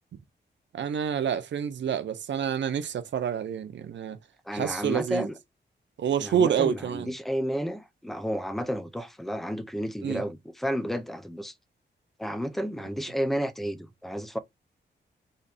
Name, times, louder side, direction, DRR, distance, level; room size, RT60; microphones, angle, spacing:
voice 1, 0.7-4.2 4.5-5.3 6.0-7.1 10.0-10.2, right 8 dB, 80° right, 0.7 m, -28 dB
voice 2, 4.5-5.4 6.2-11.5 12.2-14.4, equal, ahead, 0.5 m, -31 dB
4.1 x 3.1 x 4.1 m
wide cardioid pair, 145°, 19 cm